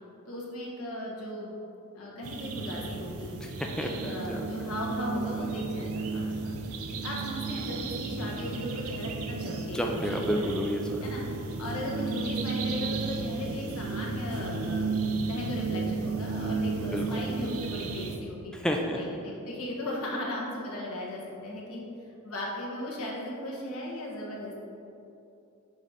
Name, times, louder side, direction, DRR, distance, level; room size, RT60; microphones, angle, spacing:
voice 1, 0.3-1.5 1.9-3.3 3.8-6.5 6.8-10.5 11.0-11.2 11.6-14.9 15.3-18.5 18.9-21.8 22.2-24.6, left 1 dB, 75° left, -3 dB, 1.3 m, -37 dB
sound 1, 2.2-18.2, right 4 dB, 75° right, 0.5 m, -33 dB
voice 2, 3.4-4.4 9.7-11.0 16.8-17.0 18.6-19.0, equal, 5° left, 1 dB, 0.3 m, -30 dB
5.2 x 3.8 x 5.5 m, 2.8 s
head